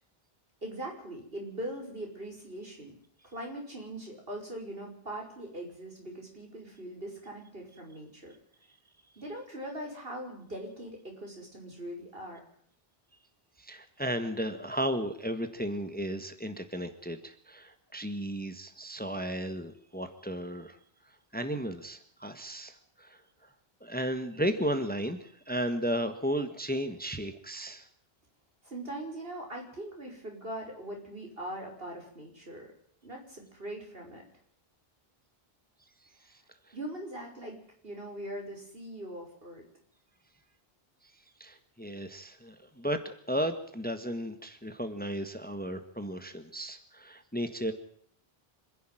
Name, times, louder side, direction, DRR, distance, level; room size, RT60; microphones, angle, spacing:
voice 1, 0.6-2.9 3.2-8.3 9.2-12.4 28.6-32.7 33.0-34.2 36.7-37.6 37.8-39.6, right 1 dB, 65° right, 1 dB, 5.9 m, -41 dB
voice 2, 13.6-20.8 21.3-23.2 23.8-27.9 36.3-36.4 36.7-36.8 41.4-47.7, equal, 10° left, 9 dB, 1.6 m, -34 dB
26.0 x 11.0 x 9.2 m, 0.63 s
omnidirectional pair, 1.0 m